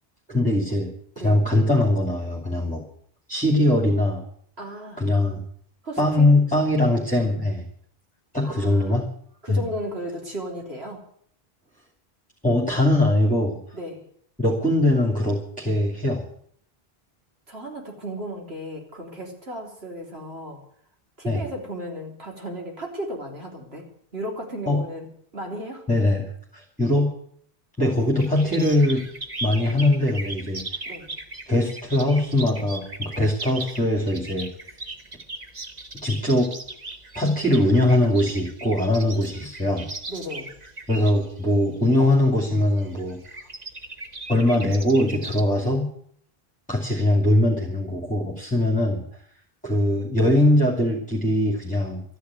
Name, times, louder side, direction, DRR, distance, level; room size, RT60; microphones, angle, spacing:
voice 1, 0.3-0.9 1.2-2.8 3.3-4.2 5.0-5.4 6.0-7.6 8.3-9.0 9.5-9.6 12.4-13.6 14.4-16.2 21.2-21.4 24.7-24.8 25.9-26.2 26.5-27.1 27.8-29.0 29.4-30.6 31.5-34.5 36.0-36.5 37.1-39.9 40.9-43.2 44.3-45.9 46.7-49.0 49.6-52.0, left 1 dB, 5° left, 0 dB, 2.6 m, -21 dB
voice 2, 4.6-5.1 5.8-6.3 8.4-9.0 9.4-11.0 13.7-14.0 17.5-20.6 21.2-25.1 25.3-25.8 27.9-28.1 30.9-31.1 40.1-40.5, equal, 85° right, 0 dB, 3.8 m, -35 dB
sound 1, 28.2-45.4, right 2 dB, 40° right, 1.5 m, -38 dB
13.0 x 10.5 x 9.5 m, 0.63 s
omnidirectional pair, 1.0 m